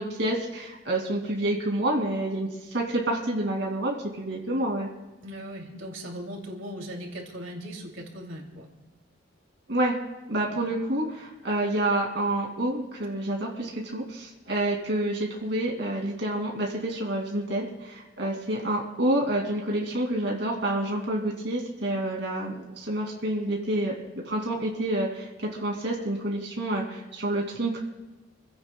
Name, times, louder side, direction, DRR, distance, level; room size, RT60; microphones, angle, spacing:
voice 1, 0.0-4.9 9.7-9.9 10.3-24.0 24.2-27.8, right 1 dB, 60° right, 0 dB, 2.4 m, -28 dB
voice 2, 5.2-8.7, equal, 85° right, 1 dB, 2.7 m, -38 dB
28.0 x 16.0 x 2.3 m, 1.1 s
head